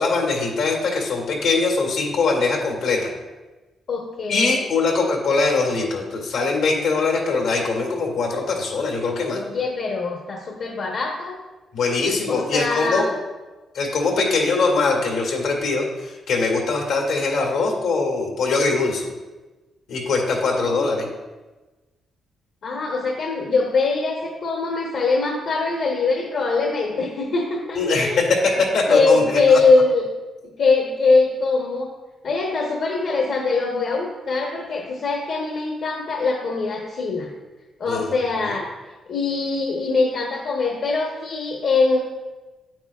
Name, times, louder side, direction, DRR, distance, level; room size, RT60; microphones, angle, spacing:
voice 1, 0.0-3.1 4.3-9.4 11.7-13.1 13.7-19.1 19.9-21.1 27.7-29.4 37.9-38.1 38.4-38.5, left 3 dB, 90° left, 0 dB, 1.9 m, -22 dB
voice 2, 3.9-4.6 9.3-11.4 12.3-13.1 20.6-21.0 22.6-28.2 28.9-30.0 30.4-31.9 32.2-37.3 37.8-38.7 39.1-42.0, left 3 dB, 65° left, -1 dB, 1.0 m, -22 dB
8.9 x 8.5 x 2.4 m, 1.2 s
cardioid pair, 95°, 0 cm